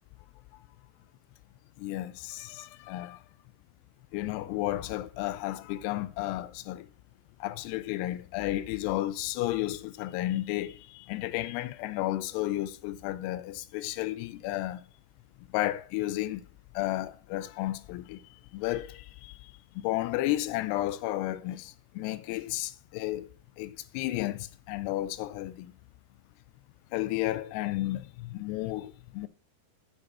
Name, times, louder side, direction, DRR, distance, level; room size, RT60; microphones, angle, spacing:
voice 1, 1.8-3.2 4.1-6.9 7.4-14.8 15.5-16.4 16.8-18.2 18.5-23.3 23.6-25.7 26.9-29.3, left 16 dB, 90° left, 2.7 m, -33 dB
8.5 x 5.4 x 6.0 m
omnidirectional pair, 4.7 m